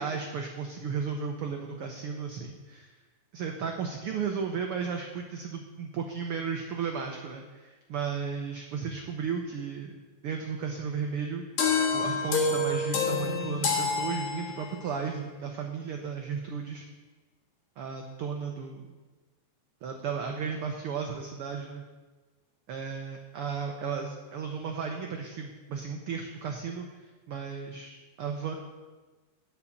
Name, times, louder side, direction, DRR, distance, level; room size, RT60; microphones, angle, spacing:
voice 1, 0.0-2.9 3.3-10.0 10.2-11.5 11.9-16.9 17.8-19.0 19.8-21.8 22.7-28.5, right 6 dB, 80° right, 3 dB, 1.2 m, -34 dB
sound 1, 11.6-14.9, left 4 dB, 65° left, 2.7 m, -28 dB
9.4 x 5.6 x 8.4 m, 1.3 s
omnidirectional pair, 3.5 m